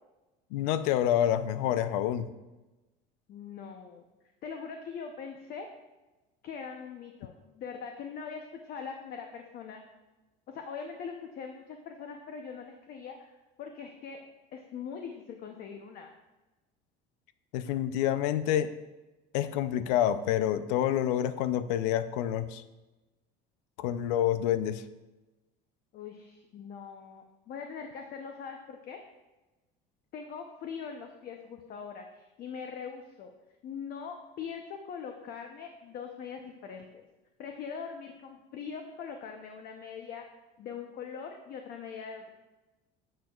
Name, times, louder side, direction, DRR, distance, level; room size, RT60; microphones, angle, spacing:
voice 1, 0.5-2.3 17.5-18.7 19.3-22.6 23.8-24.8, left 11 dB, 85° left, 13 dB, 0.5 m, -28 dB
voice 2, 3.3-4.0 4.4-5.7 6.4-9.8 10.5-13.3 13.6-14.2 14.5-16.1 25.9-29.0 30.1-33.3 33.6-37.1 37.4-40.2 40.6-42.3, left 6 dB, 45° left, 4 dB, 0.7 m, -42 dB
10.0 x 6.5 x 2.4 m, 1.1 s
cardioid pair, 130°, 21 cm